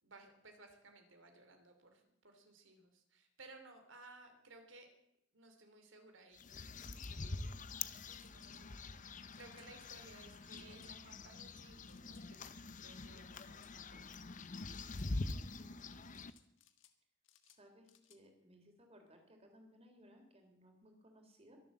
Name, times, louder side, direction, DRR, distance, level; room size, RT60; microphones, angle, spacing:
voice 1, 0.0-4.9 5.3-12.4 12.8-14.1, right 2 dB, 90° right, 5 dB, 3.0 m, -60 dB
sound 1, 6.3-16.3, left 3 dB, 40° left, 0.7 m, -45 dB
sound 2, 6.7-7.1 8.2-8.5 9.3-9.7 10.5-10.9 11.8-12.3 13.3-13.7 14.7-15.1 16.1-17.0 17.2-18.2, left 11 dB, 90° left, 1.6 m, -68 dB
voice 2, 15.0-16.0 17.4-21.6, equal, 35° right, 3 dB, 3.6 m, -63 dB
23.0 x 7.7 x 7.4 m, 0.77 s
head